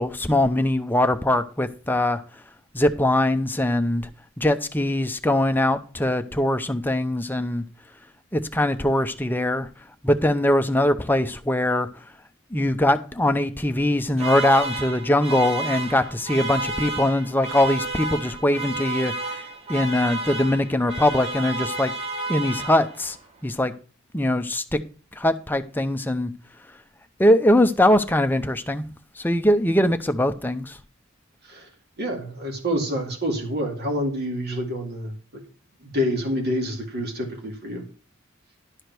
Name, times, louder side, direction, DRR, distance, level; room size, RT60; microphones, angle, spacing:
voice 1, 0.0-2.2 2.7-4.1 4.4-7.6 8.3-9.7 10.0-11.9 12.5-19.4 19.7-21.9 22.3-23.2 23.4-23.7 24.1-24.8 25.2-26.3 27.2-28.8 29.2-30.8, left 1 dB, 10° left, 0.7 m, -22 dB
sound 1, 14.2-23.2, right 3 dB, 30° right, 1.2 m, -31 dB
voice 2, 32.0-35.2 35.8-37.8, equal, 50° right, 2.2 m, -27 dB
11.5 x 5.1 x 6.0 m
head